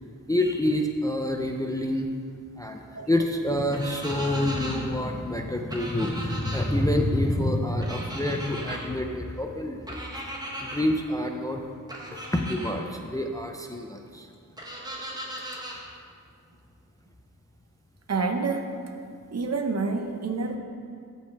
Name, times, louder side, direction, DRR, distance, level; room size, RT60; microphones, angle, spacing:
voice 1, 0.3-2.1 2.6-10.2 10.6-11.7 12.1-14.3 15.7-15.8, left 1 dB, 10° left, 3 dB, 0.4 m, -27 dB
sound 1, 3.7-4.8 5.7-6.6 7.8-8.8 9.9-10.8 11.9-12.7 14.6-15.8, right 1 dB, 10° right, 1.1 m, -37 dB
voice 2, 18.1-18.7 19.3-20.6, right 4 dB, 50° right, 4 dB, 0.7 m, -27 dB
12.5 x 5.4 x 3.4 m, 2.2 s
wide cardioid pair, 120°, 34 cm